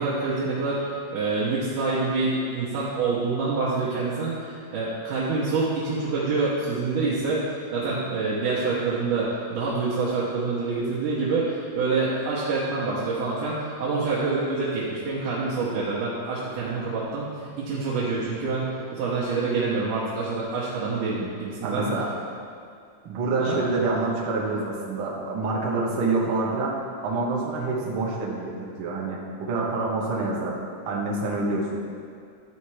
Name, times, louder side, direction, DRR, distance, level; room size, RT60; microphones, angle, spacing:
voice 1, 0.0-21.9 23.4-23.6, right 3 dB, 85° right, -8 dB, 2.6 m, -26 dB
voice 2, 21.6-22.1 23.0-30.6 30.8-31.8, right 3 dB, 55° right, -4 dB, 1.6 m, -27 dB
11.5 x 4.3 x 4.8 m, 2.3 s
omnidirectional pair, 3.7 m